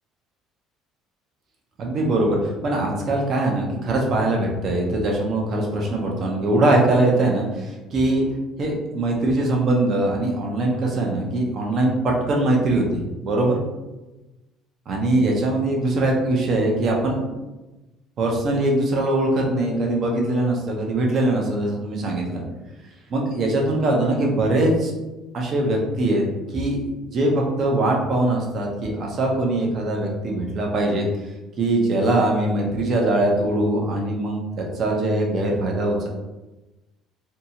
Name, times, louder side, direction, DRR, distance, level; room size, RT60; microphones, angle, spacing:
voice 1, 1.8-8.2 8.6-13.6 14.9-17.3 18.2-22.4 23.1-24.9 25.3-26.2 26.5-31.1 31.6-36.1, right 2 dB, 45° right, -1 dB, 0.6 m, -22 dB
2.7 x 2.3 x 2.8 m, 1.1 s
cardioid pair, 140°, 0 cm